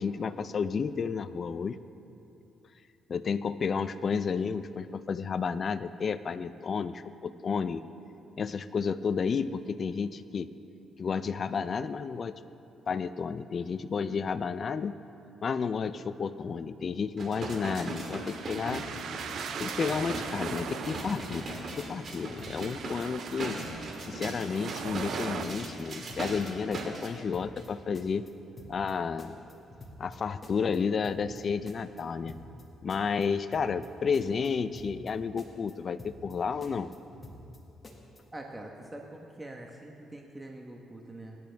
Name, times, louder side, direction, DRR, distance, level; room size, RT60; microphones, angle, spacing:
voice 1, 0.0-1.8 3.1-7.8 8.4-10.5 11.0-12.4 12.9-14.9 15.4-18.8 19.6-21.4 21.8-23.6 24.0-28.3 28.7-29.4 30.0-32.3 32.8-36.9, left 5 dB, 45° left, 12 dB, 0.4 m, -31 dB
sound 1, 17.2-27.1 27.6-27.7, right 2 dB, 50° right, 2.0 m, -38 dB
sound 2, 17.5-25.4, right 8 dB, 70° right, 0.5 m, -41 dB
sound 3, 18.7-19.0 19.3-20.3 20.5-20.9 21.1-21.5 21.8-22.7 23.0-23.4 23.6-24.0 24.2-25.2 25.5-25.8 26.1-26.5 26.7-27.7 27.9-28.3 28.6-28.9 29.2-30.2 30.4-30.8 31.0-31.4 31.7-32.6 32.9-33.3 33.5-33.9 34.1-35.1 35.4-35.7 36.0-36.4 36.6-37.6 37.8-38.2, left 2 dB, 30° left, 1.8 m, -48 dB
voice 2, 38.3-41.4, right 1 dB, 15° right, 1 dB, 1.1 m, -44 dB
22.0 x 10.5 x 3.4 m, 2.9 s
cardioid pair, 90°, 0 cm